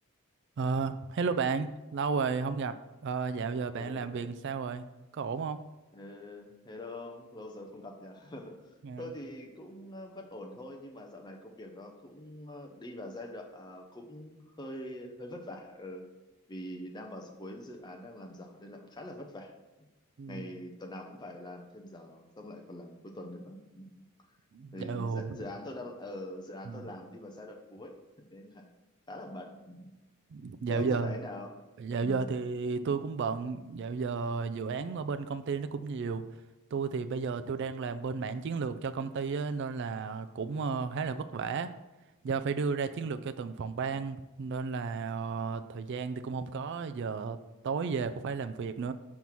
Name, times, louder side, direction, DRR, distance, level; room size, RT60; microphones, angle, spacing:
voice 1, 0.6-2.8 3.0-4.8 5.1-5.6 8.8-9.1 20.2-20.5 24.5-25.5 26.7-26.9 30.3-31.2 31.8-36.2 36.7-41.7 42.2-47.4 47.6-48.9, right 5 dB, 55° right, 10 dB, 0.3 m, -33 dB
voice 2, 3.8-4.3 5.9-8.6 9.0-16.1 16.5-19.5 20.3-24.0 24.7-28.7 29.1-29.9 30.7-31.5 32.0-32.3, left 1 dB, 20° left, 2 dB, 0.7 m, -44 dB
5.4 x 4.6 x 5.8 m, 1.1 s
head